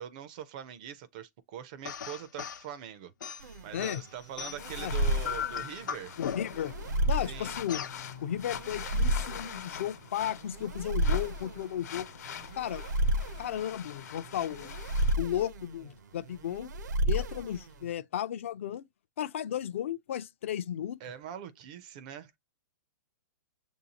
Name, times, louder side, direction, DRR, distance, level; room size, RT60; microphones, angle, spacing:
voice 1, 0.0-6.2 7.2-7.5 21.0-22.4, right 9 dB, 25° right, 0.4 m, -43 dB
sound 1, 1.9-2.7 3.2-4.8 5.2-6.7 7.7-8.0, left 8 dB, 85° left, 0.7 m, -37 dB
sound 2, 3.4-17.9, right 1 dB, 70° right, 0.6 m, -32 dB
sound 3, 4.6-15.1, left 8 dB, 60° left, 1.0 m, -44 dB
voice 2, 6.2-6.7 7.1-7.8 8.2-12.1 12.6-12.8 13.4-14.7 15.2-16.7 17.1-18.8 19.2-21.0, left 10 dB, 45° left, 0.4 m, -34 dB
6.8 x 2.6 x 2.8 m
hypercardioid pair, 170°, 10 cm